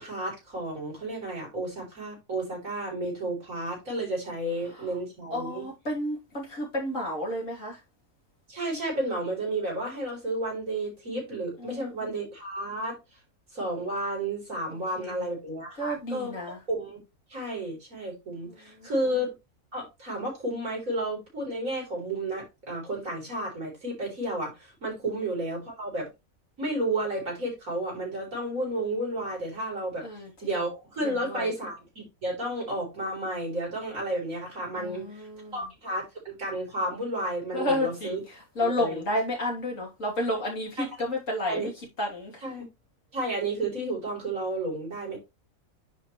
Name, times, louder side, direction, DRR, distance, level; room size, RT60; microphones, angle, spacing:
voice 1, 0.0-5.6 8.5-13.0 13.5-17.0 17.3-19.3 19.7-26.1 26.6-30.1 30.4-38.2 38.6-39.0 40.8-40.9 41.5-41.7 42.4-42.6 43.1-45.2, right 1 dB, 75° right, 4.4 m, -32 dB
voice 2, 5.3-7.8 11.6-12.1 14.7-15.3 15.8-16.6 18.4-18.9 30.0-30.3 31.0-31.5 34.7-35.6 37.5-41.7 42.0-42.5, left 1 dB, 65° left, 3.5 m, -31 dB
9.9 x 4.5 x 3.2 m
omnidirectional pair, 1.4 m